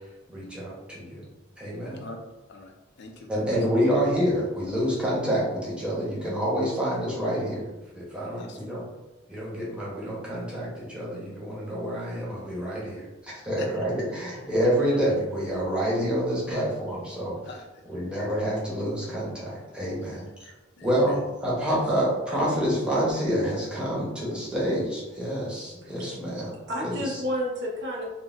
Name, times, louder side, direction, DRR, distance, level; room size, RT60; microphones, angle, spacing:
voice 1, 0.3-1.3 1.6-2.0 3.3-8.8 9.3-17.4 17.9-20.5 20.8-26.5 26.8-27.2, equal, 5° right, -7 dB, 0.8 m, -28 dB
voice 2, 2.5-3.4 8.4-8.6 13.6-13.8 17.4-18.2 19.8-20.3 20.8-21.2, left 3 dB, 60° left, 3 dB, 0.4 m, -44 dB
voice 3, 25.8-26.4 26.7-28.0, equal, 60° right, -2 dB, 0.7 m, -31 dB
3.7 x 2.1 x 2.5 m, 1.0 s
head